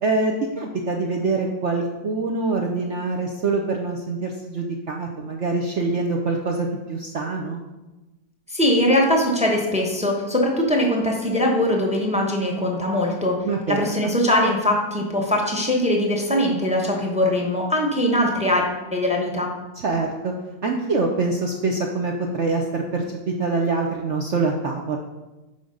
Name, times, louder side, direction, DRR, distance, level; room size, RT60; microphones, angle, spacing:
voice 1, 0.0-7.6 13.4-14.1 19.8-20.3 20.6-25.0, right 3 dB, 70° right, 1 dB, 0.6 m, -25 dB
voice 2, 8.5-13.4 13.7-18.6 18.9-19.5, left 1 dB, 5° right, 0 dB, 0.6 m, -21 dB
7.1 x 5.0 x 5.2 m, 1.1 s
omnidirectional pair, 2.0 m